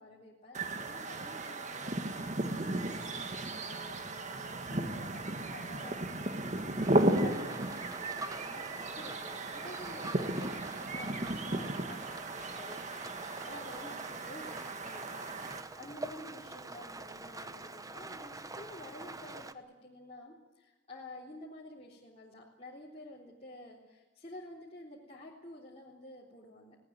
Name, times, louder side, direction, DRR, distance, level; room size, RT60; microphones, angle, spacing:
voice 1, 0.0-26.8, left 1 dB, 35° left, -6 dB, 3.6 m, -51 dB
sound 1, 0.5-15.6, right 1 dB, 40° right, 1.8 m, -35 dB
Rain, 6.8-19.5, right 2 dB, 20° right, 0.9 m, -46 dB
19.5 x 18.5 x 9.6 m, 1.1 s
head